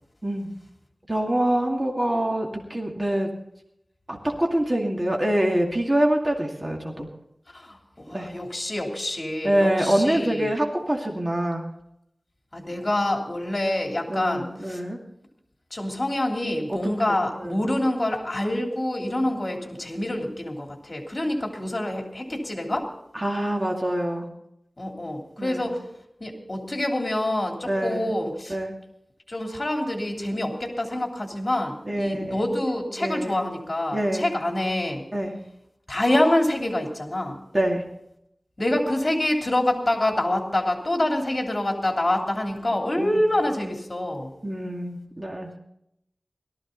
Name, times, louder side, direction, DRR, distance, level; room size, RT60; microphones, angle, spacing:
voice 1, 1.1-3.3 4.1-7.1 8.1-8.3 9.4-11.6 14.1-15.0 16.7-16.9 17.4-17.6 23.1-24.3 25.4-25.7 27.7-28.1 28.5-28.7 31.9-32.4 33.0-33.5 33.9-34.3 35.1-35.3 37.5-37.8 43.0-43.2 44.4-45.6, right 1 dB, 25° right, 0 dB, 2.2 m, -25 dB
voice 2, 7.5-10.5 12.5-14.8 15.7-22.9 24.8-25.8 26.2-28.5 29.3-35.0 35.9-37.4 38.6-44.3, left 1 dB, 35° left, 2 dB, 3.2 m, -26 dB
18.0 x 13.5 x 4.0 m, 0.78 s
wide cardioid pair, 70°, 0 cm